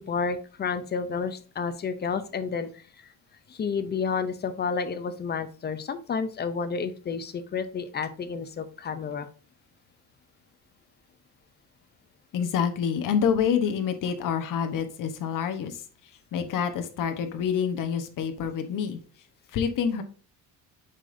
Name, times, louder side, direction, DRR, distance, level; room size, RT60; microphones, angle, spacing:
voice 1, 0.0-2.7 3.5-9.3, left 5 dB, 25° left, 11 dB, 0.5 m, -30 dB
voice 2, 12.3-19.0 19.5-20.0, left 7 dB, 50° left, 8 dB, 1.0 m, -27 dB
7.3 x 5.1 x 2.6 m, 0.39 s
cardioid pair, 165°, 42 cm